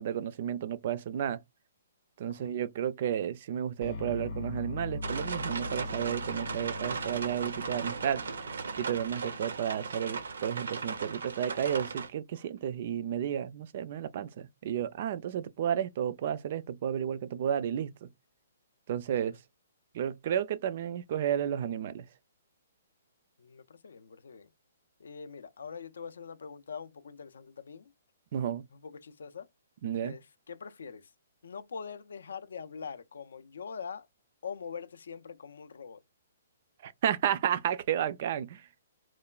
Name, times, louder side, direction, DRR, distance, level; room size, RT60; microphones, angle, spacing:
voice 1, 0.0-1.4 2.2-8.2 8.8-18.1 18.9-19.4 19.9-22.0 28.3-28.6 29.8-30.1 36.8-38.6, right 9 dB, 40° right, 0.3 m, -32 dB
voice 2, 2.2-2.5 19.1-19.4 23.4-24.5 25.0-27.9 28.7-29.5 30.0-31.1 31.4-34.1 34.4-36.0, left 6 dB, 80° left, 0.4 m, -43 dB
sound 1, 3.8-9.8, left 3 dB, 35° left, 0.6 m, -41 dB
sound 2, 5.0-12.1, right 4 dB, 90° right, 0.6 m, -37 dB
3.0 x 2.2 x 2.3 m
hypercardioid pair, 165°, 0 cm